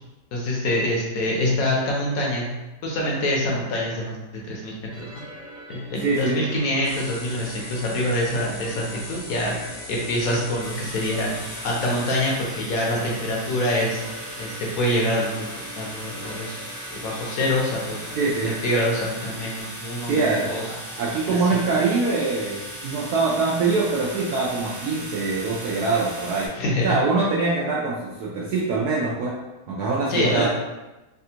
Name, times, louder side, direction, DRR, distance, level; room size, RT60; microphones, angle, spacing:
voice 1, 0.3-2.5 2.8-5.2 5.7-9.5 9.9-11.3 11.6-14.0 14.4-20.6 26.6-27.0 30.1-30.5, left 1 dB, 65° left, -2 dB, 1.0 m, -25 dB
sound 1, 4.9-19.6, equal, 10° right, 0.7 m, -43 dB
voice 2, 6.0-6.4 18.1-18.6 20.0-26.5 26.8-29.4 29.7-30.5, right 3 dB, 75° right, -5 dB, 1.0 m, -24 dB
sound 2, 6.8-12.2, left 2 dB, 85° left, 0.5 m, -40 dB
sound 3, 10.6-26.5, right 1 dB, 30° right, 0.3 m, -37 dB
3.3 x 2.4 x 2.8 m, 1.1 s
omnidirectional pair, 1.8 m